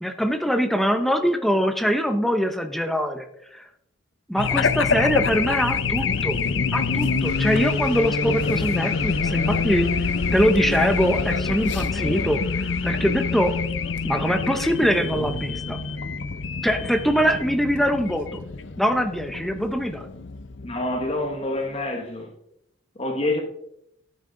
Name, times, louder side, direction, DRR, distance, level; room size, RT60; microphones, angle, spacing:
voice 1, 0.0-3.7 4.3-6.4 6.7-13.6 14.0-15.8 16.6-18.4 18.8-20.1, equal, ahead, 6 dB, 0.9 m, -23 dB
Race car auto racing / Alarm, 4.4-21.3, left 4 dB, 60° left, 0.7 m, -26 dB
sound 1, 7.2-13.6, left 3 dB, 80° left, 4.6 m, -44 dB
voice 2, 20.6-22.3 22.9-23.4, left 2 dB, 30° left, 3 dB, 1.3 m, -27 dB
12.5 x 9.4 x 3.9 m, 0.76 s
head